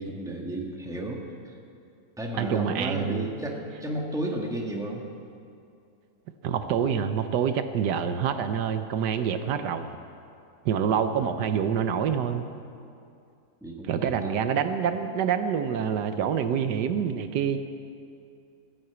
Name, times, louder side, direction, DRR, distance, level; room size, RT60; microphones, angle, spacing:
voice 1, 0.0-1.6 2.2-5.0 11.2-11.3 13.6-14.5, right 1 dB, ahead, -1 dB, 1.6 m, -33 dB
voice 2, 2.4-3.2 6.4-9.9 10.6-12.4 13.9-17.6, right 7 dB, 80° right, 9 dB, 1.4 m, -26 dB
15.5 x 9.9 x 8.1 m, 2.5 s
omnidirectional pair, 1.8 m